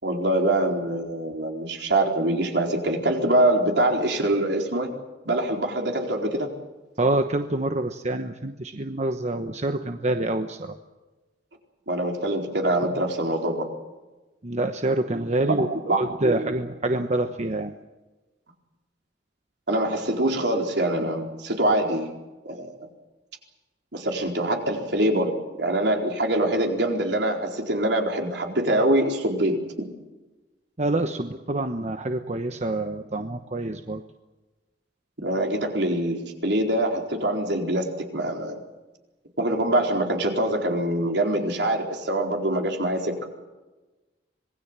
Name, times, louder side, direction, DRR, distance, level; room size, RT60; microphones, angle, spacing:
voice 1, 0.0-4.9 5.2-6.5 11.9-13.7 15.4-16.5 19.7-22.1 22.4-22.8 23.9-29.9 35.2-38.6 39.4-43.3, right 1 dB, 70° right, 2 dB, 4.3 m, -24 dB
voice 2, 7.0-10.7 14.4-17.7 30.8-34.0, right 2 dB, 40° right, 7 dB, 1.1 m, -26 dB
26.0 x 20.5 x 7.5 m, 1.1 s
head